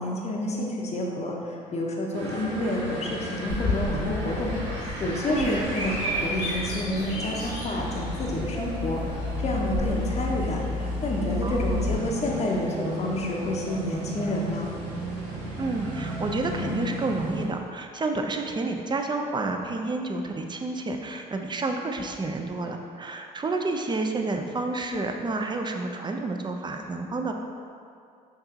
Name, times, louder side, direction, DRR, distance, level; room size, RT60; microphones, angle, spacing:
voice 1, 0.0-10.6 11.0-14.7, left 1 dB, 35° left, -2 dB, 0.7 m, -29 dB
Ext distance village heavy traffic peoples bkg, 2.1-17.5, right 1 dB, 70° right, 0.9 m, -36 dB
Bird vocalization bird call bird song, 3.5-11.9, left 2 dB, 75° left, 1.4 m, -31 dB
voice 2, 11.4-11.9 15.6-27.3, right 3 dB, 20° right, 4 dB, 0.5 m, -30 dB
6.6 x 2.8 x 2.7 m, 2.4 s
hypercardioid pair, 55°, 20 cm